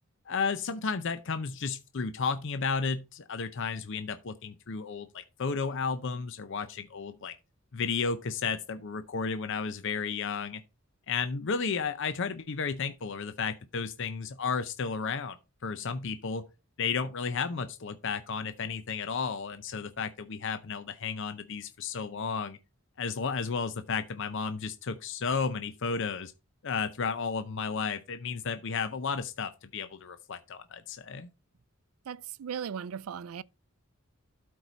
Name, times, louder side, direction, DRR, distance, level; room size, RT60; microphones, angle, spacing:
voice 1, 0.3-7.3 7.7-10.6 11.1-15.4 15.6-16.5 16.8-22.6 23.0-26.3 26.6-31.3, left 5 dB, 60° left, 0.6 m, -33 dB
voice 2, 32.1-33.4, right 7 dB, 80° right, 0.4 m, -37 dB
12.0 x 4.7 x 4.0 m
head